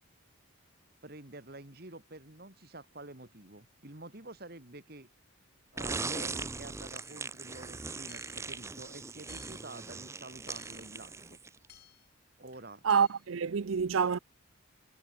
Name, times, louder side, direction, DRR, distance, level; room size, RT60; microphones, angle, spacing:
voice 1, 1.0-5.1 5.7-11.4 12.4-12.8, right 2 dB, 50° right, 2.2 m, -48 dB
sound 1, 5.8-11.7, right 4 dB, 15° right, 0.5 m, -40 dB
Hammer / Chink clink, 6.9-7.3 8.1-8.5 9.3-9.7 10.5-10.9 11.7-12.1 12.9-13.3, left 11 dB, 50° left, 3.6 m, -58 dB
voice 2, 12.8-14.2, right 6 dB, 75° right, 0.5 m, -27 dB
head